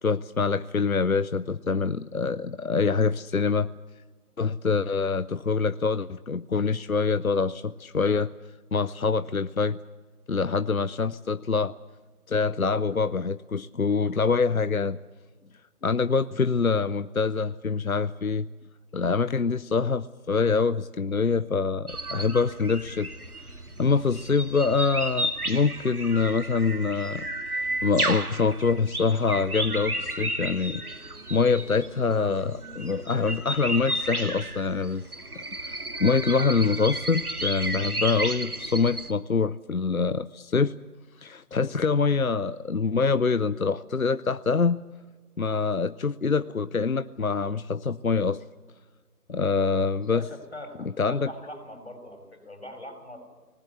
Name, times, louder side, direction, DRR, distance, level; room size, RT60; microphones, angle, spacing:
voice 1, 0.0-3.7 4.4-8.3 8.7-9.8 10.3-11.7 12.3-15.0 15.8-18.5 18.9-23.1 23.8-27.3 27.5-35.0 35.4-40.8 41.2-44.8 45.4-48.4 49.3-50.2 51.0-51.3, left 4 dB, 65° left, 14 dB, 0.7 m, -25 dB
sound 1, 21.9-39.1, right 1 dB, 75° right, 1.9 m, -33 dB
voice 2, 49.9-53.2, left 1 dB, 45° left, 5 dB, 5.6 m, -42 dB
25.0 x 19.5 x 6.9 m, 1.3 s
figure-of-eight pair, 175°, 46 cm